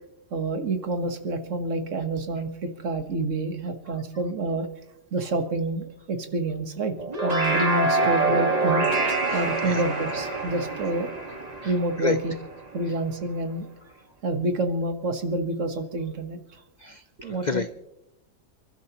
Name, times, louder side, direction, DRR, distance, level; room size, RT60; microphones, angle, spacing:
voice 1, 0.3-4.7 5.1-7.0 7.2-8.9 9.3-11.1 11.6-12.3 12.7-13.7 14.2-16.4 17.2-17.6, right 2 dB, 60° right, 7 dB, 1.6 m, -28 dB
sound 1, 7.0-12.5, right 3 dB, 30° right, 1.7 m, -26 dB
voice 2, 9.3-9.8 11.6-11.7 12.0-12.2 16.8-17.9, left 5 dB, 70° left, 11 dB, 0.4 m, -31 dB
29.0 x 12.0 x 2.9 m, 0.86 s
omnidirectional pair, 1.5 m